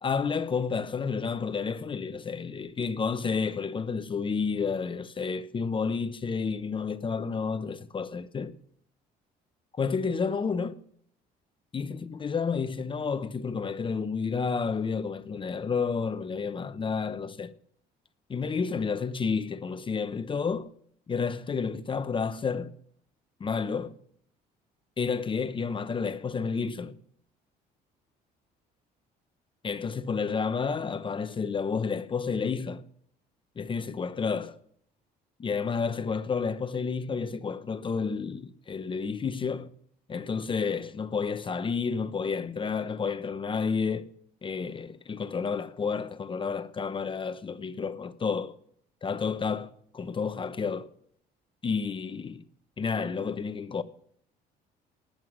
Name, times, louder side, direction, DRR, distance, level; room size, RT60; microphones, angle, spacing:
voice 1, 0.0-8.5 9.7-10.8 11.7-17.5 18.3-20.7 21.1-22.7 23.4-23.9 25.0-26.9 29.6-32.8 33.6-34.6 35.4-39.7 40.1-44.1 44.4-48.6 49.0-50.9 51.6-52.4 52.8-53.8, left 5 dB, 30° left, 0.9 m, -30 dB
19.0 x 7.8 x 6.4 m
cardioid pair, 110°, 17 cm